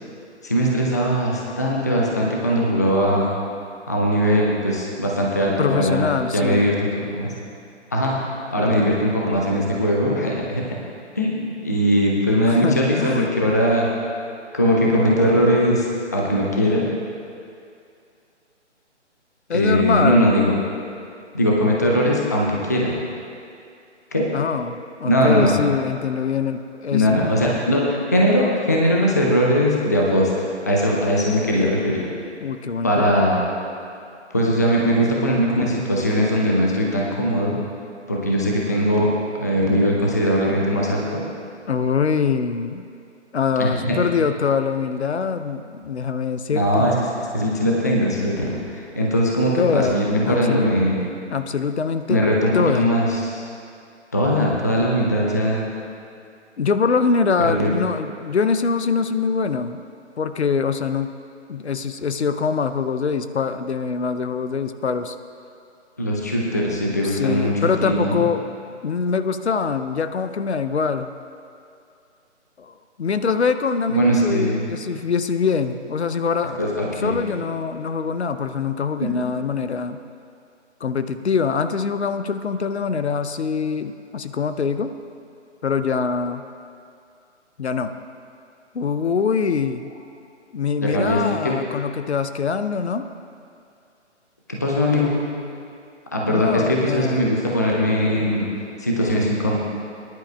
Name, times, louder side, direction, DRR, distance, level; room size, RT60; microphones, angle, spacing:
voice 1, 0.4-3.3 3.9-6.1 6.3-7.3 7.9-8.2 8.5-10.8 11.2-13.9 14.5-15.9 16.1-16.9 19.5-20.6 21.3-22.9 24.1-24.3 25.0-25.5 26.9-32.1 32.8-33.4 34.3-37.5 38.1-39.1 39.3-41.2 43.6-44.0 46.5-46.9 47.3-51.0 52.1-53.5 54.1-55.6 57.4-57.7 66.0-67.5 67.8-68.2 73.9-74.7 76.6-77.3 79.0-79.2 90.9-91.5 94.5-95.2 96.1-98.5 98.8-99.6, equal, 15° left, -2 dB, 0.4 m, -20 dB
voice 2, 5.6-6.7 12.4-13.3 19.5-20.3 24.3-27.2 32.4-33.1 41.7-42.9 43.3-46.9 49.6-50.0 50.3-50.7 51.3-52.9 56.6-59.8 60.2-61.1 61.5-65.1 67.0-68.5 68.8-71.1 72.6-76.6 77.0-80.0 80.8-84.9 85.6-86.4 87.6-87.9 88.7-89.9 90.5-93.0 96.2-97.3, left 5 dB, 65° left, 10 dB, 0.6 m, -23 dB
19.0 x 10.5 x 2.2 m, 2.4 s
figure-of-eight pair, 140°, 36 cm